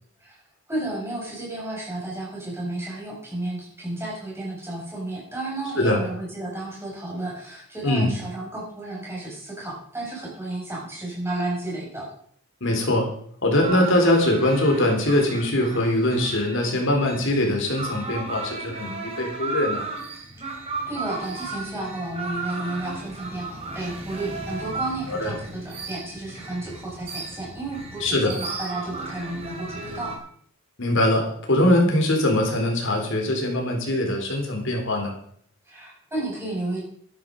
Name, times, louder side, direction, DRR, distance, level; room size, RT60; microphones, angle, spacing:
voice 1, 0.7-12.1 20.4-30.1 35.6-36.8, right 2 dB, 10° right, -4 dB, 6.5 m, -32 dB
voice 2, 5.8-6.1 7.8-8.1 12.6-13.1 13.4-19.8 25.1-25.3 28.0-28.3 30.8-35.1, left 1 dB, 60° left, 2 dB, 3.7 m, -22 dB
sound 1, 13.6-30.2, right 3 dB, 30° right, 2.9 m, -35 dB
12.5 x 10.5 x 5.3 m, 0.62 s
head